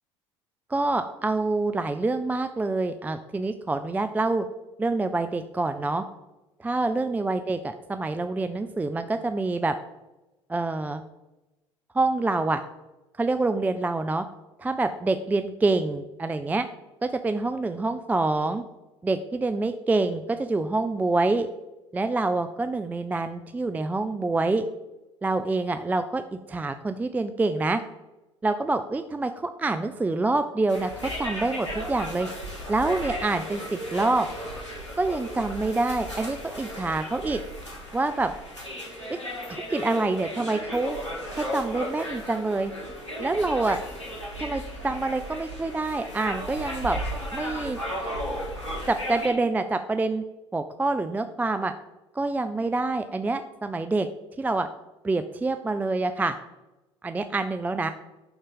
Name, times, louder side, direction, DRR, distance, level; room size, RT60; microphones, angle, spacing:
voice 1, 0.7-4.5 4.8-6.0 6.6-9.7 10.5-11.0 11.9-12.6 13.2-14.2 14.6-16.7 17.0-18.6 19.0-21.5 21.9-24.6 25.2-27.8 28.4-32.3 32.7-34.3 35.0-37.4 37.9-38.3 39.1-39.2 39.5-41.0 41.3-42.7 43.2-43.8 44.4-47.0 47.3-47.8 48.9-50.2 50.5-51.7 52.1-54.1 54.4-54.7 55.0-56.3 57.0-57.9, right 3 dB, 10° right, 9 dB, 0.4 m, -26 dB
sound 1, 30.7-49.3, equal, 85° left, 1.8 m, -35 dB
11.5 x 3.9 x 4.0 m, 1.0 s
figure-of-eight pair, 65°, 15 cm